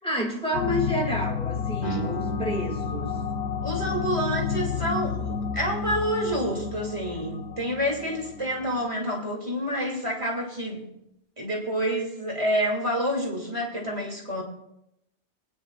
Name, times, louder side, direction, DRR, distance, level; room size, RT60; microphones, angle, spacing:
voice 1, 0.0-3.1, equal, 5° left, -2 dB, 2.5 m, -29 dB
sound 1, 0.5-8.9, left 6 dB, 65° left, 1.0 m, -31 dB
Guitar, 1.8-7.2, right 5 dB, 35° left, 3.5 m, -40 dB
voice 2, 3.6-10.9 11.4-14.4, equal, 25° right, -2 dB, 2.9 m, -28 dB
25.5 x 9.9 x 2.5 m, 0.83 s
omnidirectional pair, 1.2 m